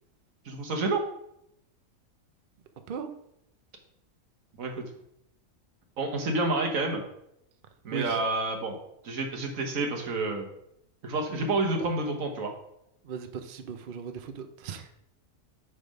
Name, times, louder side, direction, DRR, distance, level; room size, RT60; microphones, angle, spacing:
voice 1, 0.4-1.0 4.6-4.7 6.0-7.0 7.8-8.8 9.0-10.5 11.0-12.5, right 2 dB, 75° right, 2 dB, 1.6 m, -29 dB
voice 2, 13.0-14.9, right 6 dB, 55° right, 7 dB, 0.6 m, -37 dB
8.2 x 3.6 x 5.3 m, 0.77 s
omnidirectional pair, 1.4 m